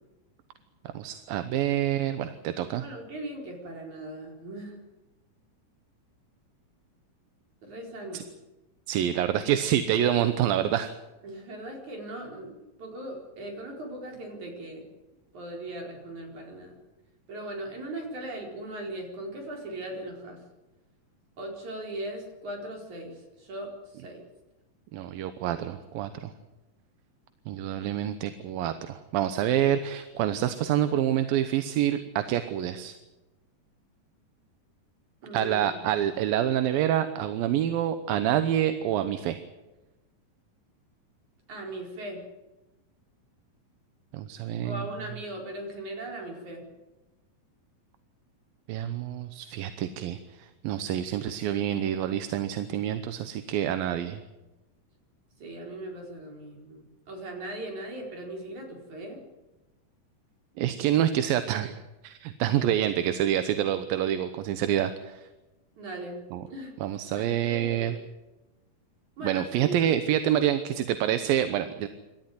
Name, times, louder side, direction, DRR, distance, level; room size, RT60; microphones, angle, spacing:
voice 1, 0.9-2.9 8.1-8.2 8.9-10.9 24.9-26.3 27.5-32.9 35.3-39.4 44.1-44.8 48.7-54.2 60.6-61.7 62.0-65.2 66.3-66.4 66.8-68.0 69.2-71.9, right 11 dB, 85° right, 10 dB, 2.8 m, -27 dB
voice 2, 2.8-4.8 7.6-8.3 11.2-12.5 12.8-14.8 15.3-16.8 17.3-20.4 21.4-24.2 35.2-35.8 41.5-42.2 44.6-46.7 55.4-59.2 65.8-66.7 67.1-67.9 69.2-69.9, right 1 dB, 55° right, 1 dB, 5.8 m, -39 dB
27.5 x 13.5 x 9.4 m, 1.1 s
omnidirectional pair, 4.0 m